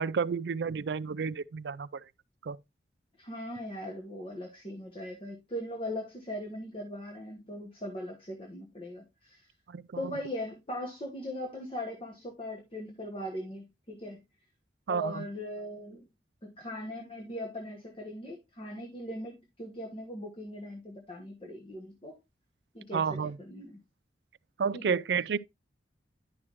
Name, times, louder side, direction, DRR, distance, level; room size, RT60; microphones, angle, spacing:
voice 1, 0.0-1.9 2.4-2.6 9.7-9.8 14.9-15.2 22.9-23.4 24.6-25.4, right 6 dB, 70° right, 0.4 m, -30 dB
voice 2, 3.2-9.5 10.0-14.2 14.9-16.1 16.4-22.1 22.7-23.8 24.7-25.0, left 1 dB, 30° left, 1.3 m, -39 dB
10.5 x 6.1 x 3.0 m
head